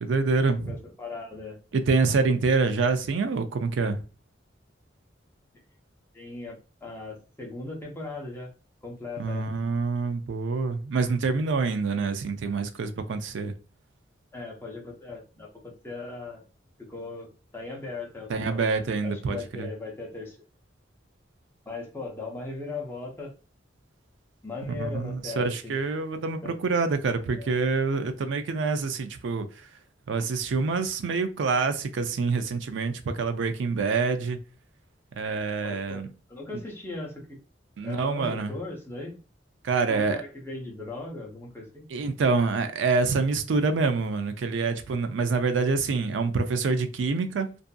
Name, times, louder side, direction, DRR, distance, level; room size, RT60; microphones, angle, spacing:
voice 1, 0.0-0.8 1.7-4.0 9.2-13.5 18.3-19.7 24.7-29.5 30.1-34.4 35.2-36.1 36.5-36.6 37.8-38.5 39.6-40.2 41.9-47.6, right 4 dB, 75° right, 0.4 m, -26 dB
voice 2, 0.7-1.6 6.1-8.5 8.8-9.5 14.3-16.5 16.8-18.6 19.0-20.4 21.7-23.3 24.4-25.8 26.4-26.5 27.4-27.5 35.6-36.0 36.3-37.4 37.8-39.2 39.9-41.9, left 3 dB, 15° left, 0.7 m, -38 dB
2.6 x 2.5 x 2.2 m
head